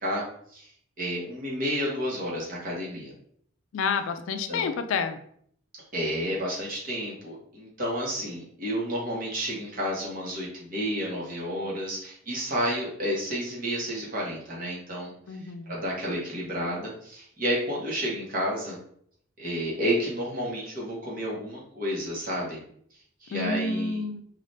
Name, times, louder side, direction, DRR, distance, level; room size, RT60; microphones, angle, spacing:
voice 1, 1.0-3.1 4.5-4.7 5.7-15.1 15.7-18.8 19.4-22.6 23.2-24.0, equal, 40° right, -4 dB, 0.9 m, -31 dB
voice 2, 3.7-5.2 15.3-15.7 23.3-24.2, left 4 dB, 75° left, 8 dB, 0.3 m, -29 dB
3.1 x 2.4 x 2.6 m, 0.64 s
head